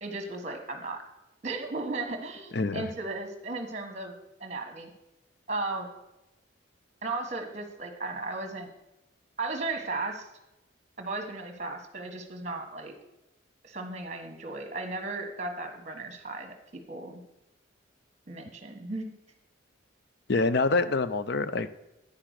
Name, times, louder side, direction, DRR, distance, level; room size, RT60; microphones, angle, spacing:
voice 1, 0.0-1.0 1.4-4.1 4.4-4.9 5.5-5.9 7.0-8.7 9.4-10.3 11.0-12.9 13.6-16.5 16.9-17.2 18.3-19.1, right 3 dB, 35° right, 5 dB, 1.3 m, -35 dB
voice 2, 2.5-2.9 20.3-21.7, left 3 dB, 55° left, 13 dB, 0.5 m, -26 dB
9.7 x 5.8 x 6.5 m, 0.94 s
head